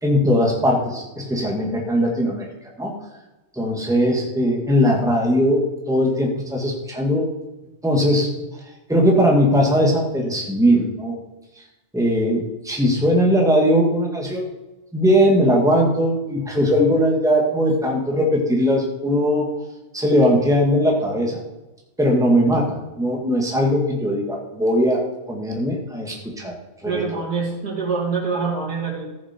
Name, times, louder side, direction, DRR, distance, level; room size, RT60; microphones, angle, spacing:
voice 1, 0.0-2.5 2.8-2.9 3.5-5.6 5.9-7.3 7.8-8.3 8.9-11.2 11.9-14.5 14.9-19.5 19.9-21.4 22.0-25.0 25.3-26.5 26.8-27.0, equal, ahead, -1 dB, 1.8 m, -19 dB
voice 2, 26.8-29.0, right 5 dB, 85° right, -3 dB, 3.2 m, -25 dB
14.5 x 7.3 x 4.5 m, 1.0 s
omnidirectional pair, 1.6 m